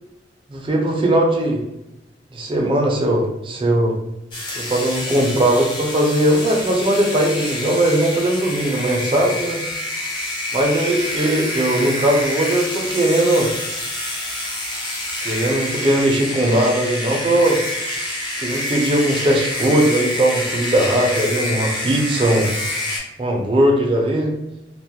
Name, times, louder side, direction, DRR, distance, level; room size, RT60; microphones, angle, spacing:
voice 1, 0.5-1.6 2.3-4.0 4.6-9.6 10.5-13.5 15.2-17.6 18.4-22.5 23.2-24.3, right 1 dB, 30° right, 0 dB, 0.4 m, -19 dB
sound 1, 4.3-23.0, left 1 dB, 25° left, 0.5 m, -27 dB
2.2 x 2.0 x 2.7 m, 0.90 s
head